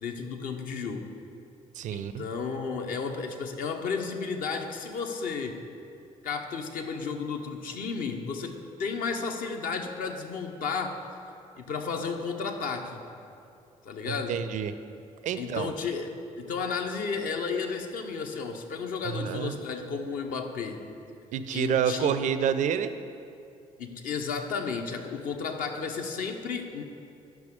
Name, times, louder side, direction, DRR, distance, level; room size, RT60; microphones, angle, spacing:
voice 1, 0.0-1.1 1.9-5.6 6.2-11.0 11.6-13.0 13.8-14.4 15.4-20.9 21.5-22.1 23.8-26.8, left 5 dB, 55° left, 4 dB, 0.7 m, -33 dB
voice 2, 1.7-2.3 14.1-14.7 15.2-15.7 19.0-19.5 21.3-22.9, right 8 dB, 45° right, 12 dB, 0.4 m, -28 dB
10.0 x 5.8 x 3.6 m, 2.5 s
figure-of-eight pair, 45°, 17 cm